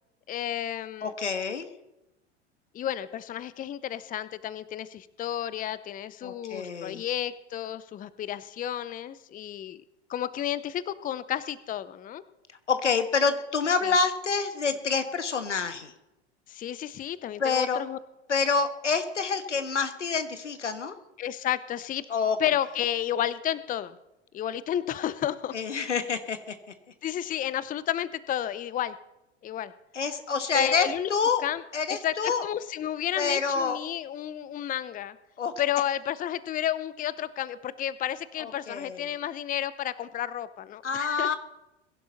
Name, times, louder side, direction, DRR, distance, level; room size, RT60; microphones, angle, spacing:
voice 1, 0.3-1.1 2.7-9.8 10.1-12.2 13.8-13.9 16.5-18.0 21.2-22.0 22.4-24.0 24.3-25.9 27.0-29.0 29.4-29.7 30.5-31.1 31.4-31.6 31.9-35.2 35.6-41.3, left 11 dB, 25° left, 17 dB, 0.7 m, -32 dB
voice 2, 1.0-1.7 6.2-7.0 12.7-15.9 17.4-17.8 18.3-21.0 22.1-22.4 25.5-26.4 29.9-31.4 31.7-32.4 33.2-33.8 35.4-35.5 38.4-39.0 40.8-41.4, left 5 dB, 90° left, 10 dB, 1.4 m, -27 dB
22.0 x 11.5 x 4.1 m, 0.94 s
hypercardioid pair, 85°, 35 cm